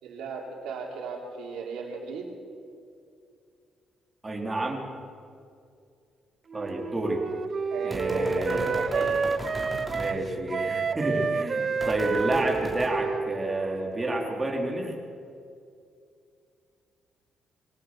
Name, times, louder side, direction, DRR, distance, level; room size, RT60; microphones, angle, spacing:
voice 1, 0.0-2.3 7.7-9.2, right 4 dB, 85° right, 0 dB, 4.0 m, -35 dB
voice 2, 4.2-4.9 6.5-7.2 7.8-8.7 9.9-14.9, right 1 dB, 20° right, 0 dB, 4.4 m, -29 dB
Wind instrument woodwind instrument, 6.5-14.5, right 5 dB, 40° right, 0.8 m, -30 dB
sound 1, 7.9-10.1 11.8-12.9, right 1 dB, 5° right, 3.6 m, -38 dB
23.5 x 18.5 x 6.4 m, 2.4 s
cardioid pair, 90°, 0 cm